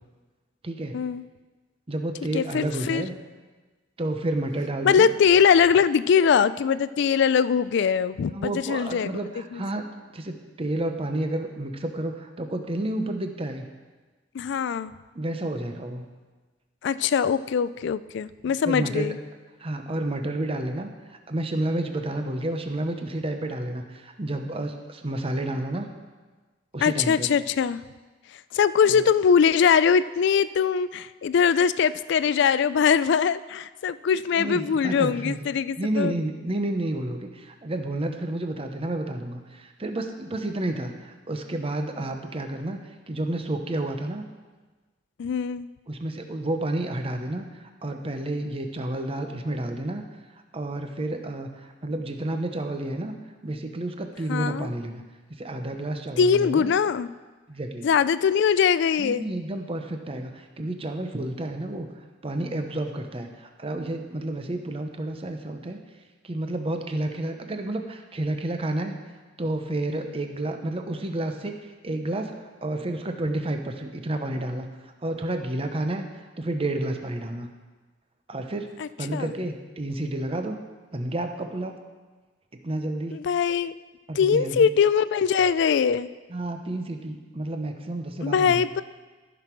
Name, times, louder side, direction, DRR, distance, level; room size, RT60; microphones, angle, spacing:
voice 1, 0.6-1.0 1.9-3.1 4.0-5.1 8.3-9.9 10.1-13.7 15.1-16.1 18.6-19.2 19.6-20.9 21.3-25.9 26.7-27.3 28.8-29.1 34.4-35.5 35.8-42.8 43.1-44.2 45.9-50.0 50.5-53.1 53.4-55.0 55.4-56.7 57.5-57.9 59.0-61.9 62.2-65.8 66.2-69.0 69.4-74.7 75.0-76.0 76.4-77.5 78.3-78.7 79.0-80.6 80.9-81.8 82.6-83.2 84.1-84.7 86.3-88.7, right 1 dB, 30° right, 5 dB, 0.8 m, -30 dB
voice 2, 2.3-3.0 4.8-9.1 9.5-9.6 14.3-14.9 16.8-19.2 26.8-27.8 28.5-36.1 45.2-45.7 54.3-54.7 56.2-57.1 57.8-59.3 78.8-79.3 83.1-83.7 84.2-86.1 88.2-88.8, left 7 dB, 65° left, 16 dB, 0.3 m, -22 dB
14.5 x 6.1 x 4.5 m, 1.3 s
head